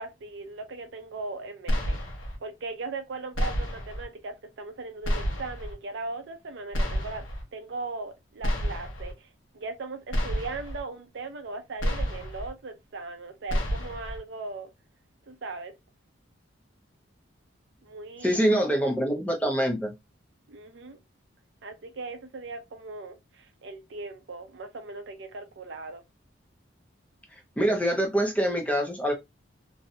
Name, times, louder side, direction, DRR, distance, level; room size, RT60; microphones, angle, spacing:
voice 1, 0.0-2.0 2.4-7.3 7.5-14.7 15.3-15.7 17.8-18.5 20.5-21.0 21.6-26.0, right 3 dB, 65° right, 0.5 m, -38 dB
sound 1, 1.7-2.4 3.3-4.0 5.0-5.7 6.7-7.4 8.4-9.1 10.1-10.8 11.8-12.5 13.5-14.2, equal, 85° left, 0.8 m, -29 dB
voice 2, 18.2-19.9 27.6-29.1, equal, 5° left, 0.5 m, -25 dB
2.6 x 2.1 x 2.6 m
head